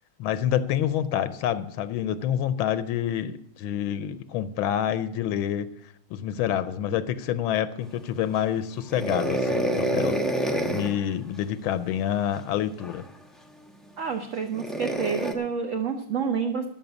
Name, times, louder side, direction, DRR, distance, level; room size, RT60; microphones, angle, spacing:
voice 1, 0.2-5.7 6.1-13.0, left 10 dB, 80° left, 13 dB, 1.4 m, -27 dB
sound 1, 8.9-11.0 12.8-13.0 14.5-15.3, right 1 dB, ahead, 0.4 m, -27 dB
voice 2, 14.0-16.7, right 6 dB, 55° right, 4 dB, 0.9 m, -28 dB
13.0 x 5.9 x 8.2 m, 0.75 s
omnidirectional pair, 2.3 m